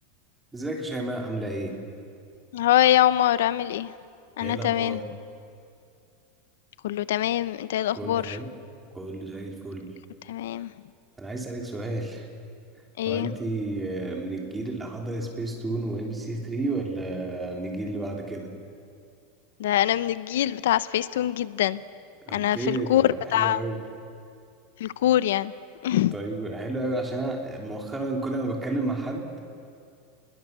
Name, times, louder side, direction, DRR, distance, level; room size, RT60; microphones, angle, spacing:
voice 1, 0.5-1.8 4.4-5.0 7.9-8.5 8.9-9.9 11.2-12.3 13.0-18.5 22.3-23.9 25.9-29.4, right 2 dB, 10° right, 0 dB, 3.3 m, -31 dB
voice 2, 2.5-3.9 4.4-5.0 6.8-8.4 10.3-10.7 13.0-13.3 19.6-21.8 22.3-23.0 23.3-23.6 24.8-25.5 25.8-26.1, left 12 dB, 85° left, 16 dB, 0.7 m, -24 dB
30.0 x 21.5 x 6.8 m, 2.4 s
supercardioid pair, 155°, 0 cm